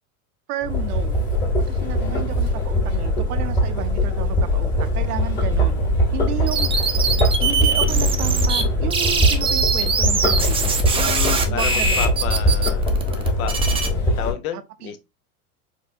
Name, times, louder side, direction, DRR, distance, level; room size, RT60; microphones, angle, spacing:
voice 1, 0.5-1.2 1.7-5.8 6.1-6.9 7.4-12.2 14.5-15.0, right 12 dB, 80° right, 0.6 m, -32 dB
sound 1, 0.6-14.3, left 1 dB, 25° left, 1.7 m, -21 dB
voice 2, 2.1-2.5 10.9-13.6 14.1-15.0, left 9 dB, 70° left, 0.8 m, -32 dB
sound 2, 6.5-8.6 8.9-13.9, right 5 dB, 15° right, 0.5 m, -22 dB
4.3 x 2.7 x 2.5 m
hypercardioid pair, 90°, 46 cm